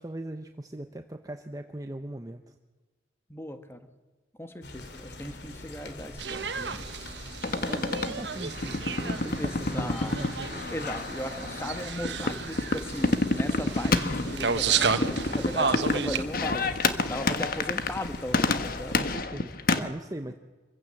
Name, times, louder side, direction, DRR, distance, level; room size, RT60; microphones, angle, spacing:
voice 1, 0.0-2.5 7.6-10.7 18.9-20.3, right 1 dB, 20° right, 6 dB, 0.8 m, -39 dB
voice 2, 3.3-3.8 4.4-6.9 9.4-10.2 10.7-19.1, left 1 dB, 15° left, 8 dB, 1.5 m, -37 dB
sound 1, 4.6-19.2, left 2 dB, 75° left, 3.0 m, -43 dB
sound 2, 6.2-16.2, right 5 dB, 85° right, 1.3 m, -32 dB
sound 3, 7.4-19.8, left 3 dB, 55° left, 1.3 m, -29 dB
26.5 x 15.5 x 7.7 m, 1.3 s
head